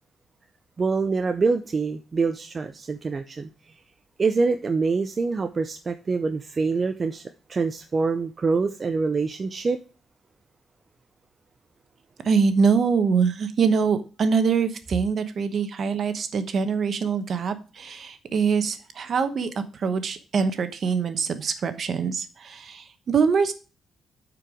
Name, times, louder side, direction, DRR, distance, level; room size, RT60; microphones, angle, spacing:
voice 1, 0.8-3.5 4.2-7.2 7.5-9.8, right 4 dB, 30° right, 7 dB, 0.5 m, -25 dB
voice 2, 12.2-23.5, right 5 dB, 50° right, 10 dB, 1.0 m, -24 dB
8.8 x 4.7 x 4.9 m, 0.34 s
cardioid pair, 145°, 0 cm